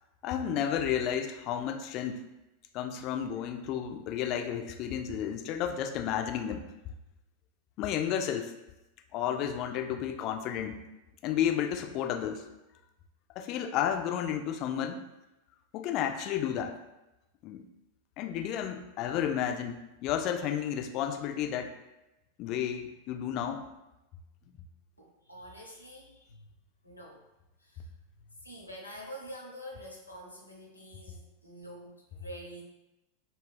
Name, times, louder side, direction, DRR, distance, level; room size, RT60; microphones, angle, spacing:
voice 1, 0.2-2.2 2.7-6.7 7.8-8.5 9.1-10.8 11.2-12.5 13.4-15.0 15.7-16.8 17.4-17.7 18.2-21.7 22.4-23.6, left 9 dB, 45° left, 5 dB, 0.3 m, -32 dB
voice 2, 25.0-26.5 26.8-27.2 27.6-27.9 28.3-32.6, equal, 90° left, -1 dB, 0.6 m, -47 dB
2.3 x 2.3 x 3.3 m, 0.97 s
figure-of-eight pair, 90°, 0 cm